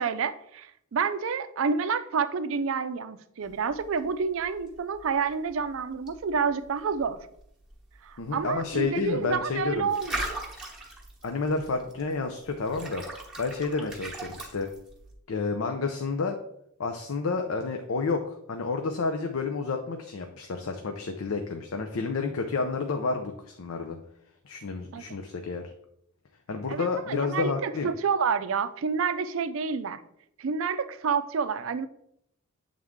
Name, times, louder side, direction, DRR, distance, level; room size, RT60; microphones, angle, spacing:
voice 1, 0.0-7.2 8.0-10.4 24.9-25.0 26.7-30.0 30.4-31.9, right 5 dB, 60° right, 12 dB, 0.4 m, -29 dB
sound 1, 3.4-15.1, right 1 dB, 5° right, 1.0 m, -41 dB
voice 2, 8.2-9.9 11.2-13.0 13.4-14.7 15.3-16.4 16.8-24.0 24.5-25.6 26.5-27.9, left 4 dB, 65° left, 4 dB, 0.5 m, -30 dB
7.7 x 3.6 x 3.6 m, 0.73 s
head